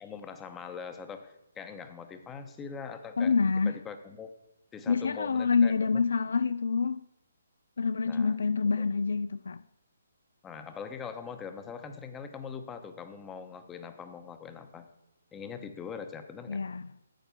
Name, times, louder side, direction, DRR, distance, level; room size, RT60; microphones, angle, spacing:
voice 1, 0.0-3.4 3.7-4.3 4.7-6.0 8.1-8.4 10.4-14.9 15.3-16.6, left 6 dB, 15° left, 0.9 m, -42 dB
voice 2, 3.2-3.8 4.9-7.0 7.8-9.6 16.5-16.8, left 5 dB, 65° left, 0.3 m, -27 dB
9.2 x 7.8 x 6.9 m
figure-of-eight pair, 140°, 0 cm